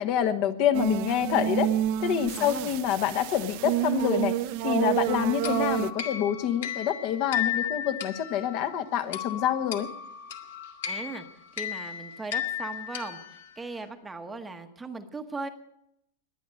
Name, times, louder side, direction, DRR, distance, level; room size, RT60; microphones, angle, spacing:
voice 1, 0.0-1.7 2.0-4.3 4.6-9.9, left 9 dB, 45° left, 9 dB, 1.2 m, -27 dB
sound 1, 0.7-5.9, right 14 dB, 50° right, 0.7 m, -29 dB
voice 2, 2.4-2.7 10.9-11.3 11.5-15.5, right 3 dB, 10° right, 6 dB, 1.1 m, -38 dB
sound 2, 5.4-13.8, left 10 dB, 70° left, 2.0 m, -35 dB
21.5 x 9.3 x 6.5 m, 0.76 s
supercardioid pair, 155°, 0 cm